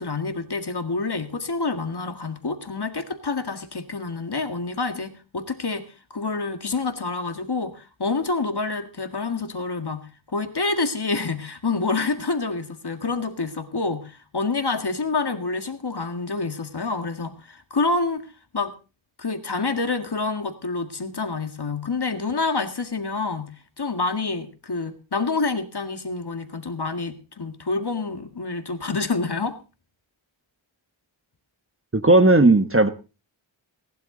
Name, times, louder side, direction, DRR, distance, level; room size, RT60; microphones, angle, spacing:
voice 1, 0.0-18.2 18.5-18.7 19.2-29.6, left 3 dB, 55° left, 1.9 m, -27 dB
voice 2, 31.9-32.9, right 2 dB, 25° right, 1.2 m, -15 dB
19.0 x 11.5 x 3.9 m
wide cardioid pair, 50°, 49 cm